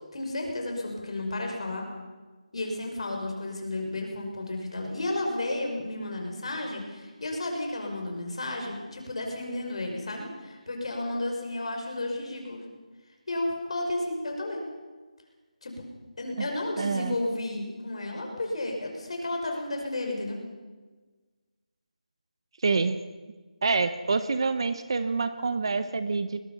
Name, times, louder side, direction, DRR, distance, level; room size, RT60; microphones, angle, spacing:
voice 1, 0.1-1.9 2.5-12.6 13.3-14.6 15.6-15.9 16.2-20.4, left 2 dB, 50° left, 2 dB, 5.6 m, -32 dB
voice 2, 16.8-17.1 22.6-23.0 23.6-26.4, right 4 dB, 40° right, 12 dB, 0.9 m, -27 dB
22.0 x 21.0 x 5.6 m, 1.3 s
figure-of-eight pair, 175°, 4 cm